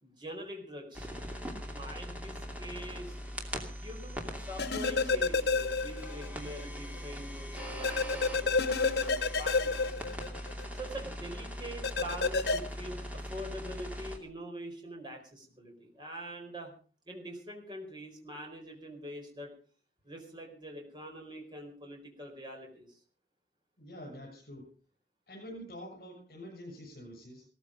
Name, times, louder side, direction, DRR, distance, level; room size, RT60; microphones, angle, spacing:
voice 1, 0.0-1.1 1.7-3.2 3.7-9.9 10.7-16.7 17.0-19.5 20.0-23.0, equal, 25° right, 2 dB, 4.6 m, -44 dB
sound 1, 0.9-14.2, equal, 10° right, 2.7 m, -41 dB
sound 2, 4.6-6.3 6.6-6.7 7.8-10.6 11.8-12.6, left 4 dB, 70° left, 1.3 m, -29 dB
voice 2, 23.8-24.7 25.3-27.5, equal, 55° left, -2 dB, 7.0 m, -46 dB
17.5 x 14.0 x 5.1 m, 0.39 s
head